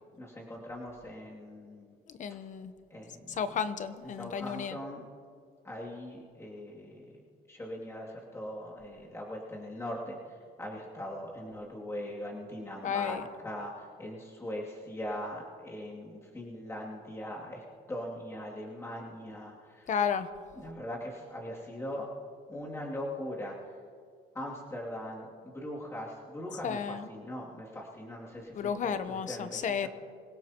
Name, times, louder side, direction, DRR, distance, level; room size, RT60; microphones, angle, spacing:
voice 1, 0.0-2.0 2.9-3.5 4.1-5.0 5.6-7.2 7.5-13.2 13.4-19.9 20.6-22.1 22.5-23.8 24.3-29.9, left 1 dB, 15° left, -4 dB, 2.6 m, -41 dB
voice 2, 2.1-2.7 3.3-4.8 12.8-13.2 19.9-20.3 26.6-27.1 28.5-29.9, left 7 dB, 45° left, 11 dB, 0.9 m, -32 dB
26.0 x 16.5 x 3.0 m, 2.2 s
cardioid pair, 110°, 17 cm